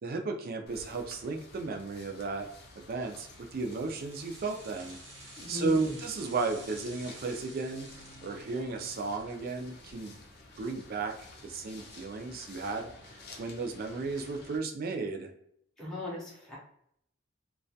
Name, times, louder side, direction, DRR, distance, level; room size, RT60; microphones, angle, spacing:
voice 1, 0.0-2.5 2.8-5.0 5.5-7.9 8.2-10.1 10.6-15.3, right 3 dB, 50° right, 5 dB, 0.4 m, -34 dB
sound 1, 0.7-14.6, left 2 dB, 55° left, 0.5 m, -52 dB
sound 2, 3.0-10.3 10.7-10.8, right 2 dB, 75° right, 0.9 m, -52 dB
voice 2, 5.4-6.0 15.8-16.6, left 3 dB, ahead, -6 dB, 0.6 m, -38 dB
2.3 x 2.2 x 2.6 m, 0.71 s
head